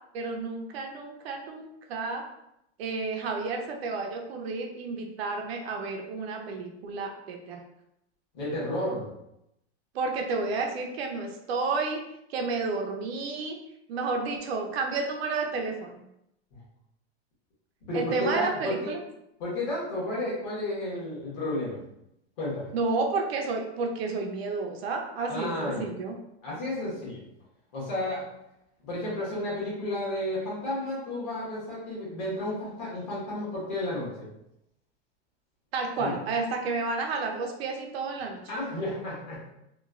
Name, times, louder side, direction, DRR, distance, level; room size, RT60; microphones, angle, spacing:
voice 1, 0.1-2.2 2.8-7.6 9.9-12.0 12.3-13.6 13.9-16.0 17.9-19.0 22.7-26.1 35.7-38.4, right 3 dB, 65° right, 2 dB, 0.5 m, -31 dB
voice 2, 8.3-9.1 16.5-16.6 17.9-18.9 19.4-21.8 22.4-22.7 25.3-25.9 26.4-27.2 27.7-28.2 28.8-34.3 36.0-36.1 38.5-39.5, left 1 dB, 35° left, -7 dB, 1.1 m, -32 dB
3.0 x 2.2 x 2.3 m, 0.81 s
supercardioid pair, 175°, 34 cm